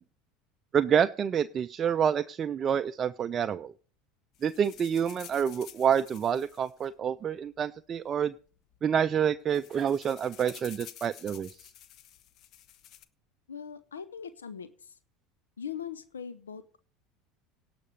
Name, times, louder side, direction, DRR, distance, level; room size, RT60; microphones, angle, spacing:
voice 1, 0.7-3.7 4.4-8.3 8.8-11.7, right 8 dB, 35° right, 11 dB, 0.5 m, -28 dB
sound 1, 4.3-7.6 8.4-8.5 8.7-8.9 9.2-13.0, left 11 dB, 50° left, 0.9 m, -51 dB
voice 2, 13.5-15.0 15.6-16.8, left 7 dB, 90° left, 12 dB, 0.8 m, -41 dB
17.5 x 6.0 x 5.1 m, 0.41 s
hypercardioid pair, 75°, 0 cm